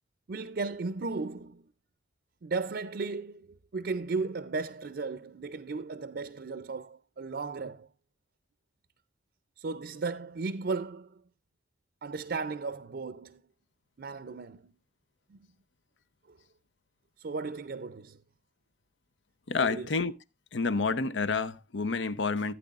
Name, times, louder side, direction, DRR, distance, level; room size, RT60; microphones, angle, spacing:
voice 1, 0.3-1.6 2.4-3.5 3.7-7.9 9.6-11.1 12.0-13.4 14.0-14.6 15.3-15.4 17.2-18.2 19.6-19.9, right 4 dB, 60° right, 0.5 m, -35 dB
voice 2, 19.5-20.1 20.5-22.5, left 4 dB, 90° left, 0.7 m, -29 dB
15.5 x 9.1 x 2.4 m
head